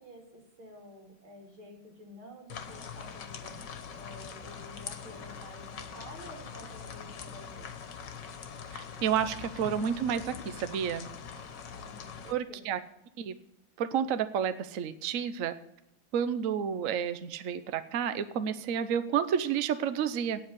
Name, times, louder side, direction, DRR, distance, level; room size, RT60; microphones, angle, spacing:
voice 1, 0.0-3.6 3.9-7.7 11.7-12.6, equal, 85° right, 1 dB, 4.0 m, -50 dB
sound 1, 2.5-12.3, left 6 dB, 65° left, 1.7 m, -43 dB
voice 2, 8.7-11.1 12.3-12.8 13.2-13.3 13.8-15.5 16.1-20.4, right 8 dB, 60° right, 12 dB, 0.9 m, -30 dB
9.3 x 8.1 x 9.5 m, 0.81 s
omnidirectional pair, 2.2 m